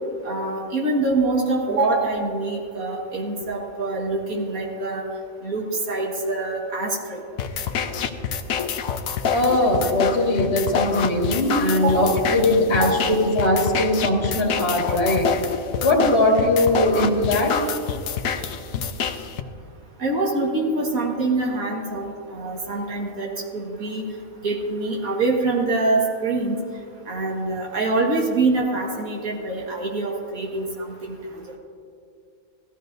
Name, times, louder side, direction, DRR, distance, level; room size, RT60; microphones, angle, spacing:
voice 1, 0.2-5.0 5.4-7.2 11.8-11.9 12.8-12.9 20.0-24.1 24.4-26.6 27.1-31.1, right 2 dB, 80° right, -1 dB, 2.2 m, -25 dB
sound 1, 7.4-19.4, left 7 dB, 75° left, 1.1 m, -27 dB
voice 2, 9.3-15.3 15.8-17.6, left 1 dB, 50° left, -1 dB, 1.8 m, -20 dB
17.5 x 14.0 x 2.7 m, 2.4 s
omnidirectional pair, 1.5 m